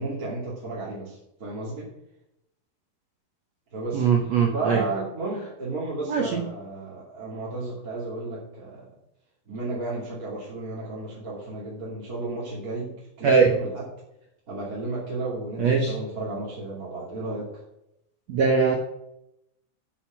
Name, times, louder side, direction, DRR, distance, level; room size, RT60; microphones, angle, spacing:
voice 1, 0.0-1.9 3.7-8.9 9.5-13.9 14.5-17.6, right 2 dB, 25° right, -7 dB, 2.6 m, -33 dB
voice 2, 3.9-4.8 6.1-6.4 13.2-13.5 15.6-15.9 18.3-18.8, right 5 dB, 80° right, 1 dB, 1.5 m, -21 dB
8.7 x 8.0 x 5.9 m, 0.83 s
omnidirectional pair, 4.7 m